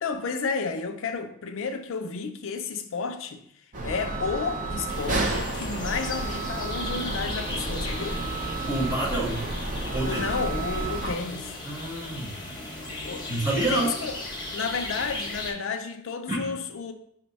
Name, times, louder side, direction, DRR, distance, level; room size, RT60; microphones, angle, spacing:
voice 1, 0.0-3.4 3.8-8.2 10.0-11.5 13.0-13.3 13.7-14.2 14.5-16.9, left 5 dB, 60° left, 0.4 m, -31 dB
sound 1, 3.7-11.1, right 2 dB, 35° right, 0.5 m, -31 dB
sound 2, 4.9-15.5, left 2 dB, 20° left, 0.6 m, -37 dB
sound 3, 5.6-11.0, equal, 90° right, 0.5 m, -43 dB
voice 2, 8.7-9.5 9.9-10.3 11.6-14.0 16.3-16.5, right 2 dB, 15° right, 1.3 m, -29 dB
5.2 x 2.2 x 3.9 m
head